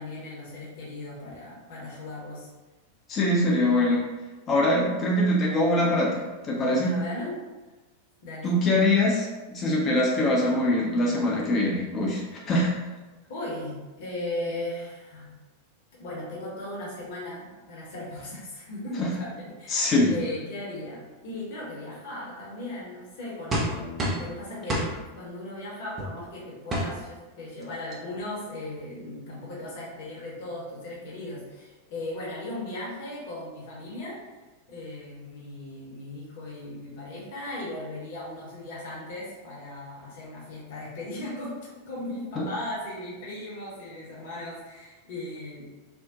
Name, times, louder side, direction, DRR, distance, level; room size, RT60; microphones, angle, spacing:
voice 1, 0.0-2.5 6.8-7.4 8.2-8.6 13.3-15.3 16.0-24.9 25.1-34.4 34.7-45.6, left 1 dB, 50° left, -5 dB, 0.8 m, -37 dB
voice 2, 3.1-4.0 4.5-6.9 8.4-12.7 19.0-19.1 19.7-20.1 42.4-42.5, left 1 dB, 30° left, -4 dB, 0.5 m, -23 dB
sound 1, 23.5-24.3 24.7-24.9 26.0-26.1 26.7-26.9 27.6-27.7 27.9-28.2, right 1 dB, 20° right, 0.5 m, -27 dB
2.6 x 2.1 x 2.4 m, 1.2 s
figure-of-eight pair, 90°, 0 cm